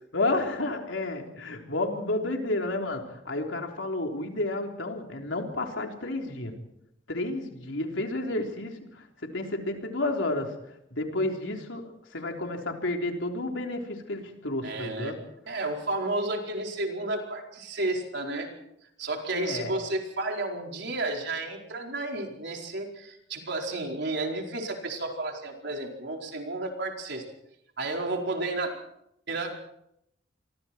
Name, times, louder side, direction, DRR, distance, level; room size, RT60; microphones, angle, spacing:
voice 1, 0.1-6.6 7.1-10.6 10.9-15.2 19.3-19.7, left 2 dB, 90° left, 2 dB, 3.7 m, -31 dB
voice 2, 14.6-15.1 15.5-18.5 19.0-27.3 27.8-28.8 29.3-29.5, right 2 dB, 65° right, 1 dB, 4.7 m, -32 dB
28.0 x 24.0 x 4.5 m, 0.78 s
head